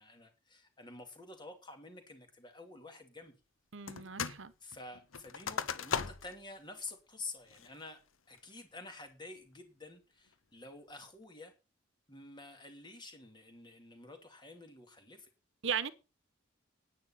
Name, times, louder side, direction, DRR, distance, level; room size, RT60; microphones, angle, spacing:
voice 1, 0.0-3.3 4.6-8.0 8.3-11.5 12.1-15.3, left 2 dB, 20° left, 2.5 m, -49 dB
voice 2, 3.7-4.5 15.6-15.9, right 7 dB, 70° right, 1.0 m, -36 dB
sound 1, 3.9-4.4 4.7-6.4 6.9-7.0 7.5-7.9 8.4-8.8, left 6 dB, 90° left, 1.0 m, -38 dB
10.5 x 9.3 x 5.8 m
head